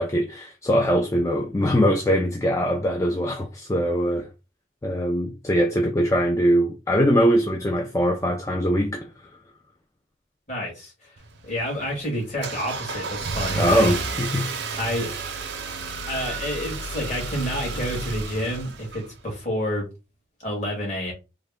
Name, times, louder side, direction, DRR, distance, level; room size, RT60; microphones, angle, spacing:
voice 1, 0.0-4.3 4.8-9.1 13.6-14.5, equal, 15° left, 0.4 m, -22 dB
voice 2, 10.5-10.9 11.4-13.9 14.8-15.1 16.1-19.9 20.4-21.1, equal, 40° left, 1.9 m, -29 dB
Car / Engine starting, 11.2-19.3, right 3 dB, 75° right, 0.6 m, -31 dB
3.4 x 2.1 x 3.6 m
head